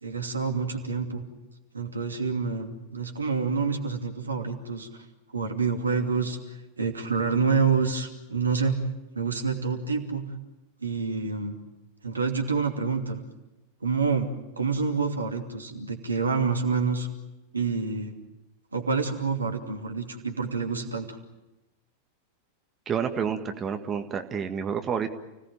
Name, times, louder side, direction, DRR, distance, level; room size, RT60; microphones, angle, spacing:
voice 1, 0.0-1.2 1.7-5.0 5.3-8.8 9.1-10.3 10.8-11.6 12.0-13.2 13.8-14.3 14.6-17.1 17.5-18.2 18.7-21.2, right 5 dB, 75° right, 4 dB, 2.7 m, -27 dB
voice 2, 22.9-25.1, right 7 dB, 25° right, 6 dB, 1.8 m, -29 dB
30.0 x 18.0 x 9.0 m, 1.0 s
figure-of-eight pair, 90°, 0 cm